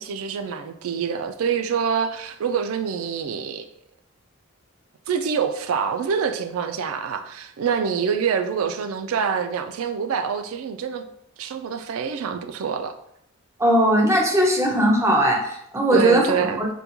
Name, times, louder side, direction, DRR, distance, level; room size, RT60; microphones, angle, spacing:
voice 1, 0.0-3.7 5.1-11.0 11.4-13.0 15.9-16.6, right 6 dB, 85° right, 0.3 m, -26 dB
voice 2, 13.6-16.7, right 1 dB, 15° right, 0.5 m, -19 dB
3.6 x 2.2 x 2.9 m
head